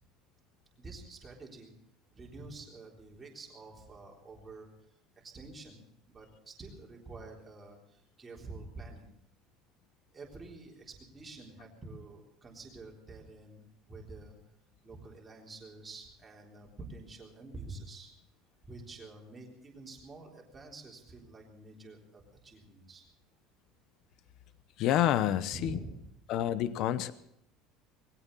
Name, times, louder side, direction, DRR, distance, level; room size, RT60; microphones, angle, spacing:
voice 1, 0.8-1.7 2.1-9.1 10.1-14.4 14.8-18.1 18.6-23.1 25.5-26.0, right 2 dB, 15° right, -1 dB, 3.8 m, -48 dB
voice 2, 24.8-25.8 26.3-27.1, left 12 dB, 45° left, 15 dB, 0.8 m, -28 dB
21.0 x 16.5 x 4.1 m, 0.74 s
cardioid pair, 175°, 0 cm